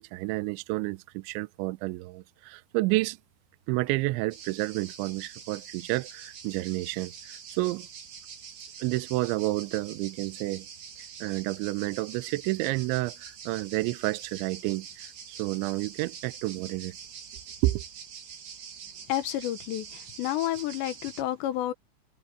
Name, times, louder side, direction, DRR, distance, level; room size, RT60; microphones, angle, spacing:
voice 1, 0.0-3.2 3.7-7.1 7.5-7.9 8.8-10.7 11.2-14.9 15.4-17.0 17.6-17.8, right 20 dB, 85° right, 2.7 m, -30 dB
sound 1, 4.3-21.2, right 7 dB, 55° right, 5.3 m, -45 dB
voice 2, 19.1-19.9 20.2-21.7, left 13 dB, 70° left, 2.9 m, -30 dB
omnidirectional pair, 5.9 m